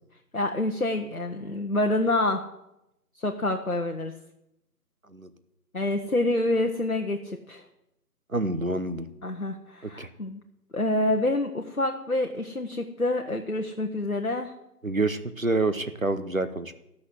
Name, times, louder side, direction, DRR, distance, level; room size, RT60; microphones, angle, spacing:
voice 1, 0.3-2.4 3.2-4.1 5.7-7.6 9.2-10.4 10.7-14.5, left 2 dB, 60° left, 3 dB, 0.9 m, -27 dB
voice 2, 8.3-9.1 10.0-10.1 14.8-16.7, right 2 dB, 55° right, 11 dB, 0.9 m, -27 dB
13.5 x 6.3 x 7.6 m, 0.85 s
figure-of-eight pair, 180°, 49 cm